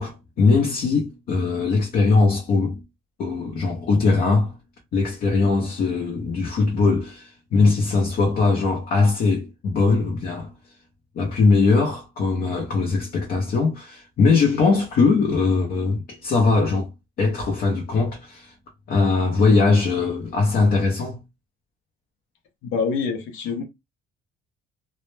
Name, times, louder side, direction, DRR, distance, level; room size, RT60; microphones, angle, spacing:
voice 1, 0.0-2.8 3.2-4.5 4.9-10.5 11.2-16.9 17.2-18.5 18.9-21.2, left 4 dB, 50° left, 0.6 m, -20 dB
voice 2, 22.6-23.6, left 5 dB, 85° left, 0.6 m, -25 dB
2.1 x 2.0 x 3.0 m
cardioid pair, 155°, 19 cm